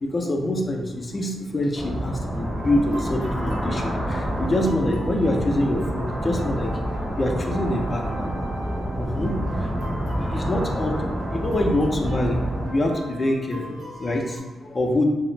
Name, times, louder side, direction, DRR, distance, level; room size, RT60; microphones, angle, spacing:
voice 1, 0.0-6.8 7.2-8.3 8.9-9.7 10.2-11.0 11.3-12.5 12.7-15.1, left 1 dB, 40° left, 1 dB, 0.5 m, -25 dB
sound 1, 1.7-12.7, equal, 5° right, 0.8 m, -28 dB
sound 2, 2.4-14.4, right 2 dB, 75° right, 0.5 m, -40 dB
2.4 x 2.0 x 3.0 m, 1.2 s
hypercardioid pair, 40°, 0 cm